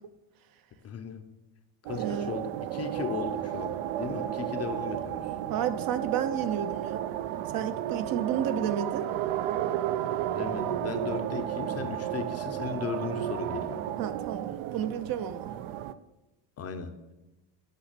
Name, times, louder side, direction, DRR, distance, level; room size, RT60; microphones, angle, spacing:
voice 1, 0.8-1.3 1.8-5.3 10.3-13.8 16.6-16.9, left 6 dB, 30° left, 8 dB, 0.5 m, -36 dB
sound 1, 1.8-15.9, right 11 dB, 85° right, 0.7 m, -33 dB
voice 2, 1.9-2.3 5.5-7.1 7.5-9.1 14.0-15.5, right 9 dB, 45° right, 12 dB, 0.5 m, -32 dB
8.9 x 5.9 x 6.6 m, 1.1 s
cardioid pair, 175°, 49 cm